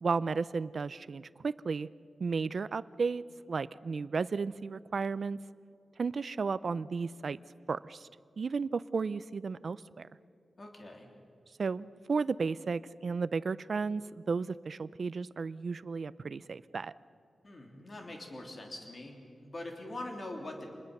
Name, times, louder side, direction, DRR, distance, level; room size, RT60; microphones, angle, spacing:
voice 1, 0.0-1.9 2.2-5.4 6.0-7.4 7.7-8.1 8.4-10.1 11.6-16.9, right 4 dB, 55° right, 17 dB, 0.5 m, -33 dB
voice 2, 10.6-11.1 17.4-20.7, left 1 dB, 40° left, 2 dB, 3.3 m, -43 dB
27.5 x 21.0 x 6.7 m, 2.5 s
wide cardioid pair, 120°, 0 cm